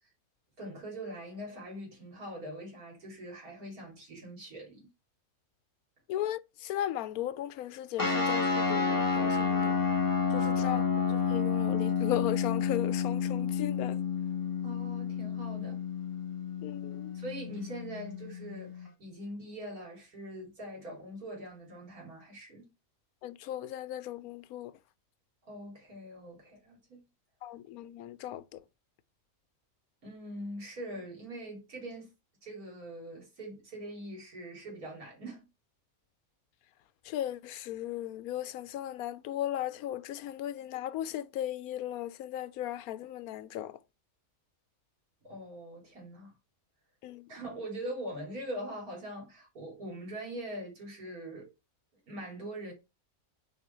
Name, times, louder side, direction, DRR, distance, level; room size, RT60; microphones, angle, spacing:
voice 1, 0.6-4.9 14.6-15.8 17.1-22.7 25.4-27.0 30.0-32.1 32.4-35.5 45.2-46.3 47.3-51.5 52.1-52.7, right 1 dB, 90° right, 3.3 m, -42 dB
voice 2, 6.1-9.8 10.3-14.0 16.6-17.2 23.2-24.7 27.4-28.6 37.1-43.8 47.0-47.2, left 12 dB, 90° left, 1.1 m, -36 dB
sound 1, 8.0-18.9, left 6 dB, 15° left, 1.4 m, -30 dB
6.6 x 4.4 x 4.3 m
omnidirectional pair, 1.5 m